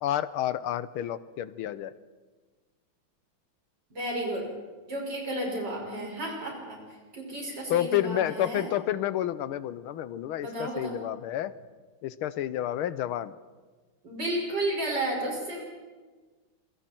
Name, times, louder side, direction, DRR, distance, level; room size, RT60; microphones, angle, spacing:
voice 1, 0.0-1.9 7.7-11.5 12.0-13.3, left 12 dB, 90° left, 15 dB, 1.7 m, -30 dB
voice 2, 3.9-4.5 4.9-6.8 7.1-8.7 10.4-11.0 14.0-15.6, right 1 dB, 55° right, -1 dB, 6.6 m, -32 dB
27.0 x 23.0 x 4.5 m, 1.4 s
omnidirectional pair, 2.3 m